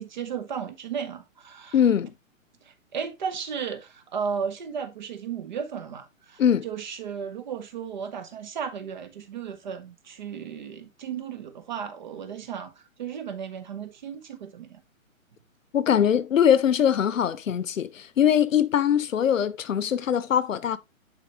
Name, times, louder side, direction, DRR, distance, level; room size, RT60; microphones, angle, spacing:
voice 1, 0.0-1.7 2.6-12.7 13.0-14.8, right 7 dB, 35° right, 1.1 m, -34 dB
voice 2, 1.7-2.1 6.4-6.7 15.7-20.8, left 9 dB, 70° left, 1.0 m, -22 dB
10.0 x 4.5 x 3.0 m
hypercardioid pair, 170°, 41 cm